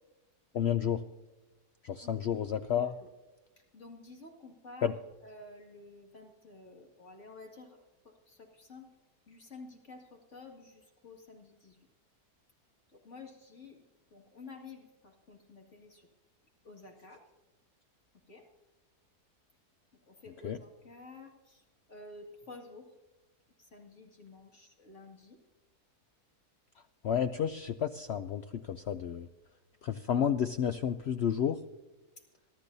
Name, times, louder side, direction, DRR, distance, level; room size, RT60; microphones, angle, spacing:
voice 1, 0.5-1.0 1.8-2.9 4.8-4.9 20.4-20.6 27.0-29.3 29.8-31.6, left 8 dB, 70° left, 10 dB, 0.6 m, -31 dB
voice 2, 2.0-2.4 2.8-3.1 3.7-4.9 5.2-8.9 9.3-11.8 12.9-13.8 14.1-16.1 16.6-17.2 18.3-18.5 20.1-22.9 23.6-25.4, left 3 dB, 50° left, 0 dB, 2.4 m, -51 dB
23.5 x 13.5 x 2.7 m, 1.1 s
omnidirectional pair, 1.7 m